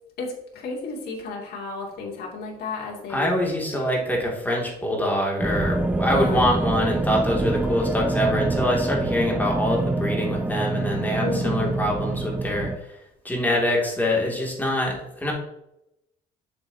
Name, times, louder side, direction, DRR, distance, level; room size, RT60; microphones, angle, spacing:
voice 1, 0.2-3.5 6.1-6.5 11.2-11.7, left 3 dB, 65° left, -3 dB, 2.5 m, -32 dB
voice 2, 3.1-12.7 13.2-15.3, left 1 dB, 10° left, -2 dB, 2.4 m, -24 dB
sound 1, 5.4-12.8, right 2 dB, 10° right, 0.4 m, -26 dB
7.3 x 6.9 x 2.8 m, 0.83 s
cardioid pair, 110°, 17 cm